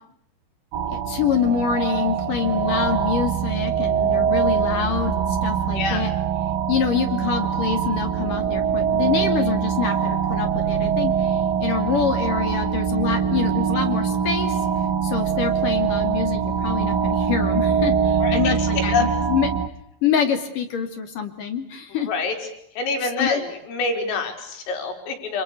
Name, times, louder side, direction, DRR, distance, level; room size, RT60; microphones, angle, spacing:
sound 1, 0.7-19.7, right 7 dB, 65° right, 2.5 m, -23 dB
voice 1, 0.9-6.1 6.7-14.6 15.0-19.5 20.0-22.1 23.2-23.4, left 7 dB, 50° left, 6 dB, 3.7 m, -25 dB
voice 2, 18.2-19.1 22.1-22.4 22.8-25.4, left 4 dB, 85° left, 3 dB, 7.3 m, -26 dB
29.0 x 27.5 x 6.7 m, 0.73 s
omnidirectional pair, 5.7 m